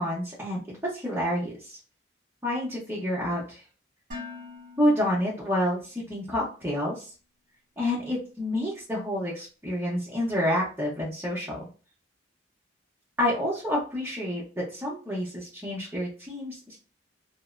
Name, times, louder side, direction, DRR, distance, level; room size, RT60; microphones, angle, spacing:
voice 1, 0.0-1.8 2.4-3.6 4.8-7.1 7.8-11.6 13.2-16.8, left 1 dB, 10° right, -8 dB, 0.8 m, -29 dB
Dishes pots and pans, 4.1-6.2, left 4 dB, 40° right, 1.1 m, -44 dB
2.7 x 2.1 x 2.4 m, 0.35 s
head